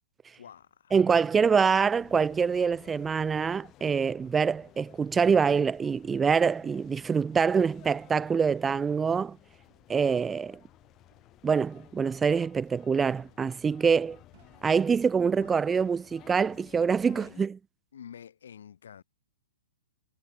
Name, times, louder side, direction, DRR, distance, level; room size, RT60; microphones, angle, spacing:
voice 1, 0.4-1.3 15.2-15.7 17.1-17.5 17.9-19.0, left 8 dB, 70° left, 4.5 m, -49 dB
voice 2, 0.9-9.4 9.9-10.6 11.4-14.2 14.6-17.6, right 6 dB, 15° right, 0.4 m, -25 dB
sound 1, 1.9-17.5, left 15 dB, 30° left, 6.6 m, -56 dB
sound 2, 7.6-16.4, right 18 dB, 50° right, 6.1 m, -64 dB
hypercardioid pair, 120°, 0 cm